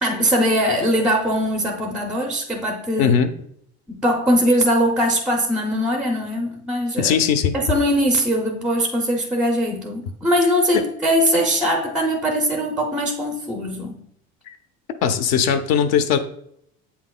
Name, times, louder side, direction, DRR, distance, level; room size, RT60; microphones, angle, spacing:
voice 1, 0.0-3.2 3.9-7.2 7.5-14.0, equal, 5° right, 0.4 m, -21 dB
voice 2, 3.0-3.3 7.0-7.5 14.5-14.6 15.0-16.2, left 7 dB, 60° left, 0.7 m, -19 dB
8.1 x 5.8 x 2.2 m
cardioid pair, 175°, 30 cm